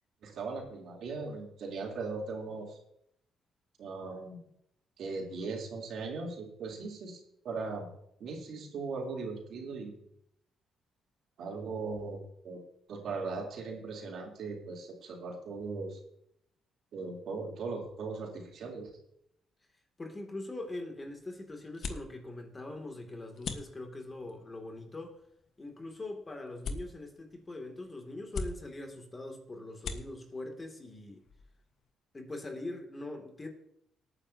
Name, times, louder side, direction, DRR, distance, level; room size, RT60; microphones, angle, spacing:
voice 1, 0.2-2.8 3.8-4.4 5.0-7.2 7.4-7.9 8.2-10.1 11.4-12.2 12.4-12.6 12.9-16.0 16.9-18.9, right 4 dB, 70° right, -1 dB, 3.6 m, -38 dB
voice 2, 20.0-25.2 25.6-31.2 32.1-33.5, left 2 dB, 25° left, 3 dB, 2.6 m, -42 dB
sound 1, 20.4-31.9, left 4 dB, 65° left, 1.4 m, -45 dB
18.5 x 9.7 x 2.9 m, 0.74 s
cardioid pair, 90°, 0 cm